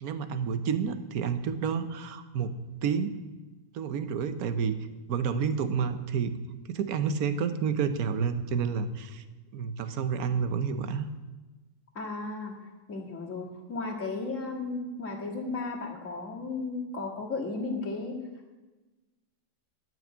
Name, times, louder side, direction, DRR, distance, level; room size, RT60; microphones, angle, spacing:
voice 1, 0.0-2.5 2.8-3.1 3.7-4.8 5.1-6.4 6.7-9.2 9.5-11.1, right 6 dB, 60° right, 10 dB, 1.2 m, -29 dB
voice 2, 12.0-12.5 12.9-18.1, left 3 dB, 45° left, -2 dB, 2.3 m, -34 dB
12.0 x 6.1 x 8.5 m, 1.2 s
omnidirectional pair, 1.9 m